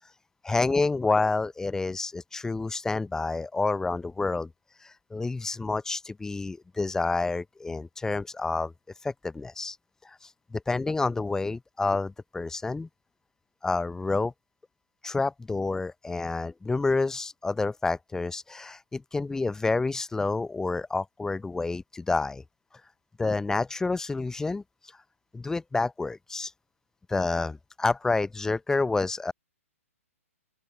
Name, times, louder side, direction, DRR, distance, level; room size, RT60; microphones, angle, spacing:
voice 1, 0.4-4.5 5.1-8.7 9.0-9.8 10.5-12.9 13.6-14.3 15.0-22.4 23.2-24.6 25.3-26.5 27.1-29.3, left 3 dB, 5° left, 2.0 m, -28 dB
open air
hypercardioid pair, 130°, 8 cm